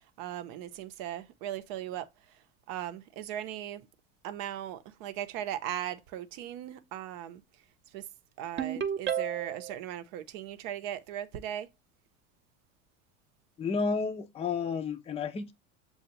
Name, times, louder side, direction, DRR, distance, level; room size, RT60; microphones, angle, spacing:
voice 1, 0.2-2.1 2.7-3.9 4.2-7.4 7.9-8.0 8.4-11.7, right 11 dB, 60° right, 0.7 m, -38 dB
Ringtone, 8.6-9.7, right 9 dB, 30° right, 0.7 m, -31 dB
voice 2, 13.6-15.5, left 5 dB, 15° left, 0.5 m, -31 dB
6.8 x 2.4 x 2.9 m
hypercardioid pair, 80°, 40 cm